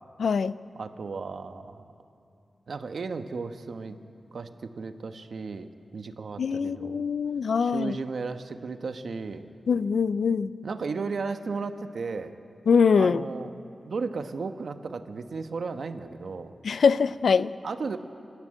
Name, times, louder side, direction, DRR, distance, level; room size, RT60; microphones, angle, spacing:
voice 1, 0.2-0.6 6.4-7.9 9.7-10.5 12.7-13.2 16.6-17.5, left 5 dB, 90° left, 15 dB, 0.5 m, -23 dB
voice 2, 0.8-1.8 2.7-4.0 4.3-7.0 7.6-9.5 10.6-12.3 13.0-13.5 13.9-16.5 17.6-18.0, right 4 dB, 70° right, 8 dB, 1.1 m, -34 dB
27.0 x 13.5 x 9.0 m, 2.7 s
wide cardioid pair, 120°, 0 cm